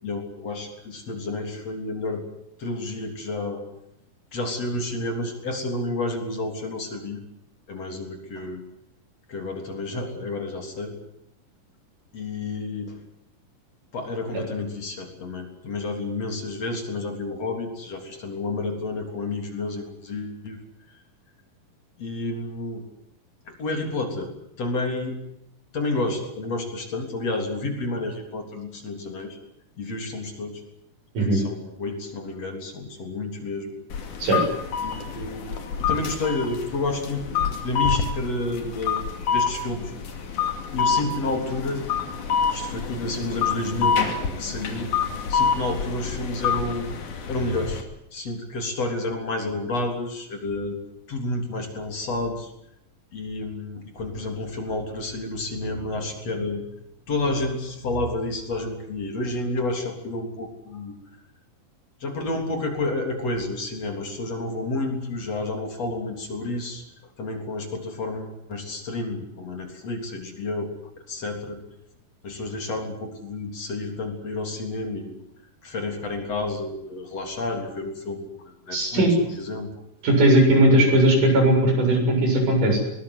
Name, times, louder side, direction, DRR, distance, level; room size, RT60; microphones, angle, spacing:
voice 1, 0.0-2.2 2.6-3.6 4.3-7.2 7.7-8.6 9.3-10.9 12.1-13.0 13.9-20.6 22.0-22.9 23.5-25.1 25.7-29.4 29.8-30.6 31.3-33.7 34.8-39.9 40.7-41.8 42.5-44.0 44.3-44.9 45.3-46.9 47.3-47.8 48.1-50.8 51.1-52.5 53.1-56.6 57.1-61.0 62.0-66.8 67.2-70.7 71.1-71.6 72.2-75.1 75.6-79.7, left 2 dB, 50° left, 4 dB, 4.5 m, -30 dB
Pedestrian Crossing Japan, 33.9-47.8, left 6 dB, 65° left, 3.9 m, -27 dB
voice 2, 78.7-79.1 80.0-82.8, right 1 dB, 70° right, 3 dB, 8.8 m, -18 dB
22.0 x 20.0 x 9.8 m, 0.78 s
omnidirectional pair, 3.9 m